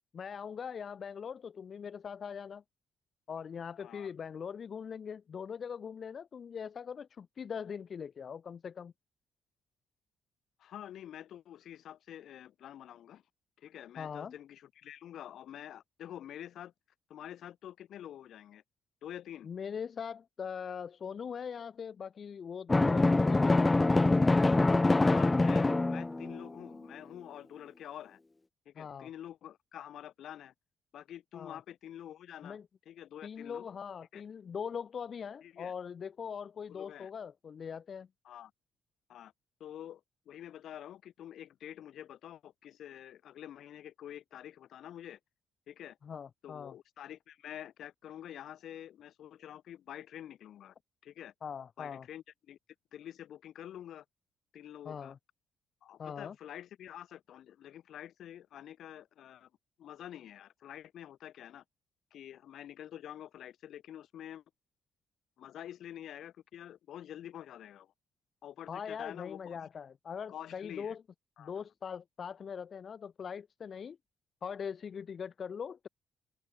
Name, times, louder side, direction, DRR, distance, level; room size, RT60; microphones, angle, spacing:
voice 1, 0.1-2.6 3.3-8.9 14.0-14.3 19.4-23.7 28.8-29.1 31.3-31.6 32.4-32.7 33.2-38.1 46.0-46.7 51.4-52.1 54.9-55.2 56.0-56.4 68.7-71.0 71.4-74.0 74.4-75.9, left 7 dB, 50° left, 2.0 m, -41 dB
voice 2, 3.8-4.1 10.6-13.2 13.6-16.7 17.1-18.6 19.0-19.5 25.0-28.2 28.7-30.5 30.9-32.6 32.9-33.7 34.1-34.2 35.4-35.7 36.7-37.1 38.2-38.5 39.1-39.3 39.6-40.0 40.3-45.2 45.7-46.0 46.4-50.7 51.0-51.3 51.8-52.6 52.9-54.0 54.5-55.1 55.8-59.5 59.8-61.6 62.1-64.4 65.4-67.9 68.4-69.7 70.3-71.0 71.4-71.6, left 11 dB, 70° left, 7.6 m, -47 dB
Drum, 22.7-26.5, left 2 dB, 20° left, 1.1 m, -25 dB
cardioid pair, 90°, 0 cm